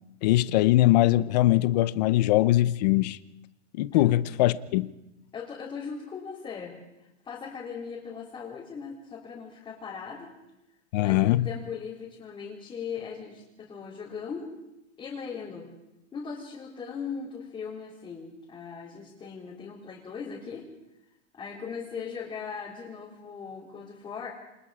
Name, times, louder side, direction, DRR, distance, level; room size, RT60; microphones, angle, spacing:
voice 1, 0.2-3.2 3.8-4.9 10.9-11.5, left 15 dB, 35° left, 0.7 m, -22 dB
voice 2, 5.3-10.4 11.0-14.6 15.0-15.7 16.1-20.7 21.3-24.3, left 6 dB, 15° left, 3.8 m, -39 dB
28.0 x 25.5 x 5.0 m
supercardioid pair, 170°, 36 cm